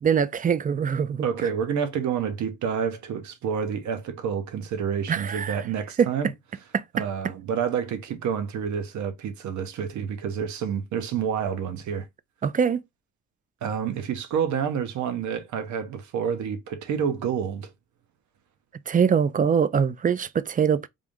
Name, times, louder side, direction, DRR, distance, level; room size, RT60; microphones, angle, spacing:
voice 1, 0.0-1.3 5.1-5.6 6.0-6.1 6.7-6.8 12.4-12.8 18.9-20.9, right 7 dB, 30° right, 0.3 m, -23 dB
voice 2, 1.2-6.3 6.9-12.1 13.6-17.7, right 7 dB, 70° right, 0.9 m, -28 dB
3.5 x 2.5 x 3.5 m
cardioid pair, 90°, 30 cm